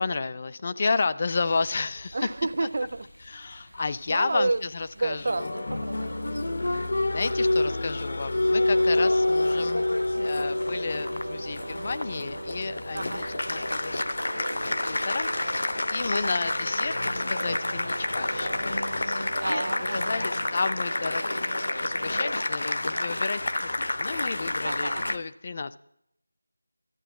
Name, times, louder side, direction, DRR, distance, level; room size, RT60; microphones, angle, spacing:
voice 1, 0.0-2.3 2.6-2.7 3.3-5.5 6.7-6.8 7.1-19.6 19.9-21.5 21.8-23.7 24.0-25.8, left 4 dB, 25° left, 14 dB, 0.4 m, -32 dB
Rain, 1.3-17.2, left 1 dB, 75° left, 6.1 m, -50 dB
voice 2, 2.1-3.0 4.1-4.6 5.0-6.9 8.9-9.1 12.9-13.3 16.1-16.4 19.4-20.3 24.6-25.2, right 2 dB, 40° right, 13 dB, 0.4 m, -31 dB
Applause, 5.2-25.2, left 2 dB, 55° left, 0.8 m, -28 dB
sound 1, 8.9-22.3, right 2 dB, 85° right, 0.6 m, -39 dB
12.5 x 8.8 x 7.0 m, 0.78 s
figure-of-eight pair, 175°, 0 cm